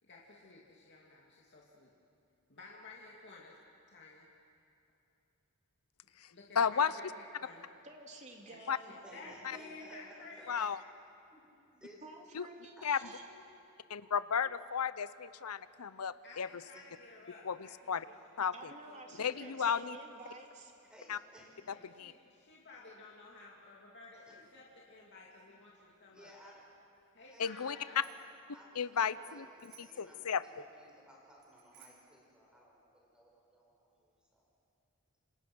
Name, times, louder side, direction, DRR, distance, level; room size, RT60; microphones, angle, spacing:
voice 1, 0.0-1.9 2.5-3.5 3.9-4.3 6.3-7.6 8.5-10.6 16.2-18.4 18.7-18.8 19.3-19.6 21.6-26.3 27.1-28.0, left 3 dB, 55° left, -3 dB, 2.7 m, -54 dB
voice 2, 6.6-6.9 8.7-8.8 9.4-9.6 10.5-10.8 12.3-12.4 12.8-13.0 13.9-16.5 17.4-17.6 17.9-18.1 18.4-18.5 19.2-20.0 21.1-21.2 22.0-22.1 27.4-27.8 28.8-30.4, left 7 dB, 90° left, 15 dB, 0.7 m, -33 dB
voice 3, 7.8-10.0 12.0-13.4 18.5-20.7, right 2 dB, 30° right, 1 dB, 3.1 m, -51 dB
voice 4, 9.0-10.7 11.3-11.4 11.7-12.0 12.8-13.1 16.7-16.8 20.9-21.7 24.1-24.4 26.1-26.6 27.2-28.2 28.5-34.5, equal, 5° right, -2 dB, 5.7 m, -58 dB
Bicycle bell, 27.7-28.4 29.6-30.1 31.4-32.2, right 6 dB, 55° right, 4.2 m, -61 dB
28.0 x 26.5 x 6.3 m, 2.7 s
head